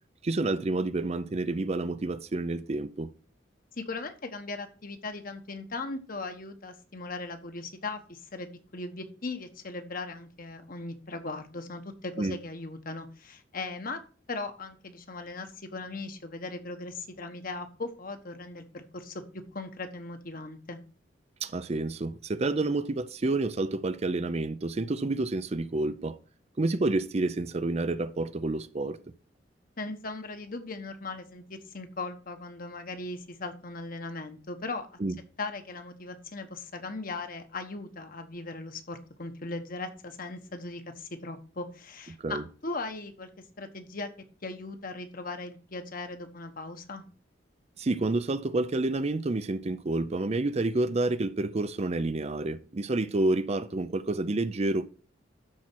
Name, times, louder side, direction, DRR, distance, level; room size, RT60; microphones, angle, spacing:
voice 1, 0.2-3.1 12.2-12.4 21.4-26.2 26.6-29.0 35.0-35.1 42.2-42.4 47.8-54.9, right 2 dB, 35° right, 0.5 m, -29 dB
voice 2, 3.8-8.5 8.7-14.0 14.3-19.2 19.5-20.8 29.8-35.0 35.4-43.3 43.6-44.1 44.4-47.0, left 3 dB, 50° left, 1.3 m, -38 dB
12.5 x 4.3 x 6.1 m
head